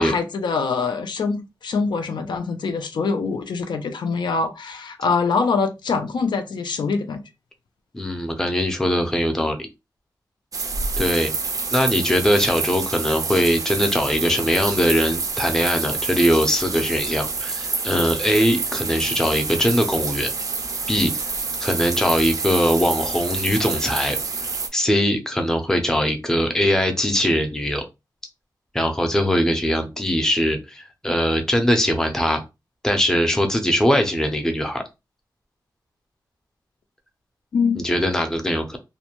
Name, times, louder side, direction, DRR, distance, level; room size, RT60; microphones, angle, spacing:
voice 1, 0.0-7.2 37.5-37.8, left 4 dB, 80° left, 0.4 m, -24 dB
voice 2, 7.9-9.7 11.0-11.3 11.7-20.3 20.9-21.1 21.6-24.2 24.7-27.9 28.7-32.4 32.8-34.8 37.8-38.8, equal, 5° left, 0.5 m, -21 dB
sound 1, 10.5-24.7, right 4 dB, 50° right, 0.4 m, -27 dB
2.5 x 2.1 x 2.8 m
wide cardioid pair, 150°, 8 cm